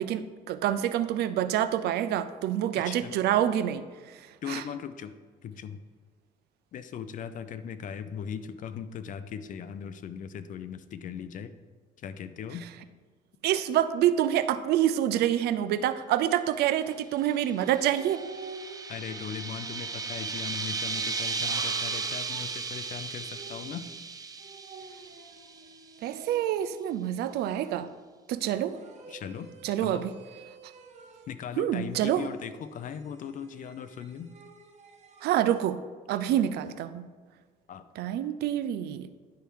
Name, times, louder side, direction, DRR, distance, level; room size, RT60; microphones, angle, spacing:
voice 1, 0.0-4.6 13.4-18.2 26.0-27.9 28.3-28.8 29.6-30.1 31.6-32.3 35.2-35.8 36.1-37.1 38.0-39.1, right 11 dB, 75° right, 12 dB, 0.5 m, -27 dB
voice 2, 2.8-3.1 4.4-5.1 5.4-5.8 6.7-11.5 12.0-12.7 18.9-23.9 29.1-29.5 29.8-30.1 31.3-34.3 37.7-37.9, left 8 dB, 50° left, 12 dB, 0.5 m, -39 dB
sound 1, 17.4-25.7, right 4 dB, 20° right, 0.5 m, -35 dB
sound 2, 17.9-19.6 20.8-23.9 24.4-26.7 27.3-28.0 28.6-31.4 31.9-35.4, right 5 dB, 40° right, 0.9 m, -49 dB
10.5 x 3.4 x 4.6 m, 1.5 s
cardioid pair, 110°, 17 cm